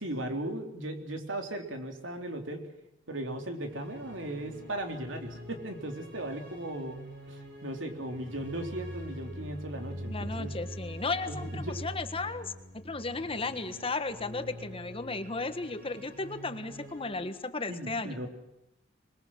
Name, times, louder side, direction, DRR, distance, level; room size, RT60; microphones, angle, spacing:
voice 1, 0.0-2.7 3.1-7.0 7.3-10.5 11.3-11.6 17.7-18.3, right 1 dB, 90° right, 4 dB, 3.6 m, -37 dB
sound 1, 3.5-17.3, equal, 65° right, 5.6 m, -44 dB
voice 2, 10.1-18.2, left 3 dB, 30° left, 9 dB, 1.5 m, -35 dB
25.5 x 21.5 x 7.5 m, 0.88 s
head